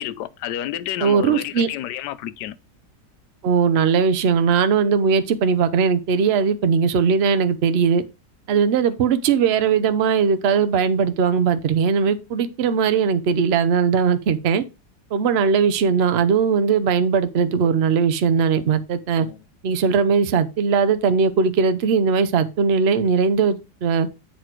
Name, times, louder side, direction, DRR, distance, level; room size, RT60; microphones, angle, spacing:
voice 1, 0.0-2.6 19.1-19.4, left 12 dB, 75° left, 1.1 m, -30 dB
voice 2, 1.0-1.7 3.4-8.0 8.5-14.6 15.1-19.3 19.6-24.1, right 6 dB, 70° right, 0.6 m, -19 dB
7.9 x 4.2 x 4.4 m
omnidirectional pair, 1.9 m